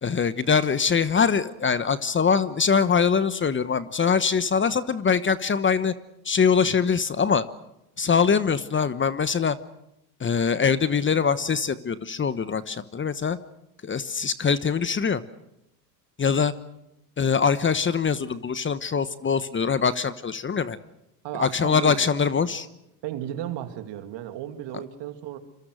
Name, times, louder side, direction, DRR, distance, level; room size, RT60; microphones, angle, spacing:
voice 1, 0.0-5.9 6.2-7.4 8.0-9.6 10.2-13.4 13.8-15.2 16.2-16.5 17.2-20.8 21.4-22.7, left 6 dB, 25° left, 14 dB, 1.1 m, -23 dB
voice 2, 21.2-22.0 22.4-22.5 23.0-25.4, right 12 dB, 60° right, 7 dB, 2.8 m, -34 dB
26.0 x 23.0 x 6.5 m, 0.85 s
hypercardioid pair, 85°, 49 cm